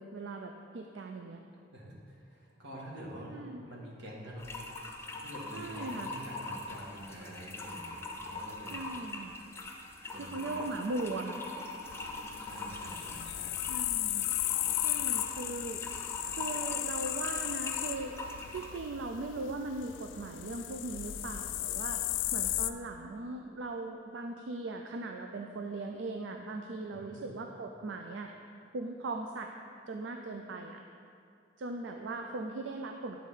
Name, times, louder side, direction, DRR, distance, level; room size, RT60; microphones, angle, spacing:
voice 1, 0.0-1.4 3.3-3.6 5.5-6.1 8.7-9.3 10.2-11.4 13.7-14.3 14.8-16.0 16.2-18.1 18.5-22.0 22.3-28.3 28.7-29.5 29.9-30.8 31.6-33.2, right 2 dB, 85° right, 4 dB, 0.4 m, -39 dB
voice 2, 1.7-4.5 4.9-5.0 5.2-8.9 10.1-10.8 12.4-13.5 26.9-27.2, equal, 70° right, -3 dB, 1.6 m, -47 dB
sound 1, 4.4-18.8, left 2 dB, 15° left, 0.7 m, -42 dB
sound 2, 11.8-22.7, left 14 dB, 85° left, 0.3 m, -35 dB
9.0 x 4.2 x 5.6 m, 2.5 s
head